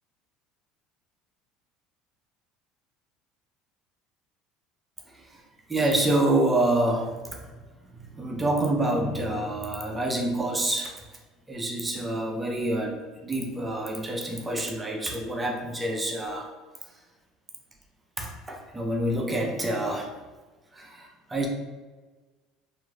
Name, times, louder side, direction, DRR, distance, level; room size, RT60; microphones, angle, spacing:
voice 1, 5.7-7.5 7.9-11.0 11.5-16.5 18.2-20.1 20.7-21.5, right 1 dB, 15° right, 1 dB, 0.5 m, -27 dB
2.9 x 2.4 x 2.3 m, 1.3 s
supercardioid pair, 100°, 0 cm